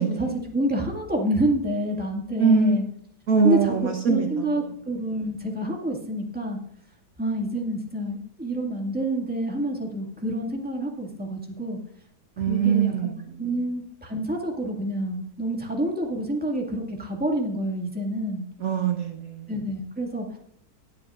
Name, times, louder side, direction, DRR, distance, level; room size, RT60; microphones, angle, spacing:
voice 1, 0.0-2.8 3.4-3.8 4.0-6.6 7.2-11.8 12.4-13.1 13.4-18.4 19.5-20.4, right 1 dB, 5° right, -1 dB, 2.0 m, -28 dB
voice 2, 2.4-2.8 3.3-4.3 12.4-13.1 18.6-19.5, right 5 dB, 55° right, 3 dB, 1.4 m, -22 dB
20.0 x 8.6 x 2.5 m, 0.64 s
omnidirectional pair, 1.8 m